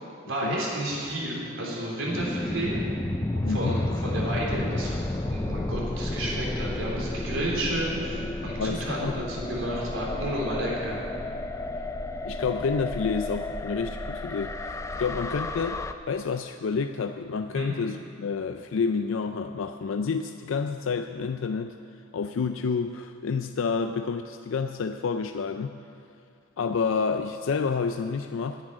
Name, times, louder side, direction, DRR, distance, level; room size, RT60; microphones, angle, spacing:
voice 1, 0.2-2.8 3.3-5.0 5.3-11.0 17.5-17.7, right 1 dB, 75° right, -4 dB, 3.6 m, -31 dB
sound 1, 2.1-15.9, left 1 dB, 15° left, 0.4 m, -32 dB
voice 2, 3.4-3.8 8.6-9.2 12.2-15.8 16.1-21.8 22.1-25.7 26.6-28.6, left 5 dB, 75° left, 8 dB, 0.4 m, -29 dB
10.0 x 8.7 x 10.0 m, 2.5 s
head